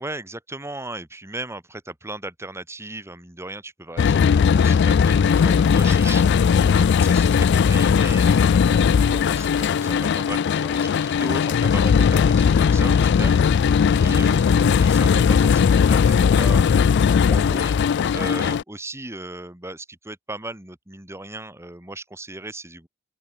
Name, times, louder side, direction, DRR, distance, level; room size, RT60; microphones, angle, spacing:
voice 1, 0.0-16.8 17.2-22.9, right 2 dB, 15° right, 2.1 m, -36 dB
sound 1, 4.0-18.6, left 6 dB, 55° left, 0.3 m, -18 dB
open air
head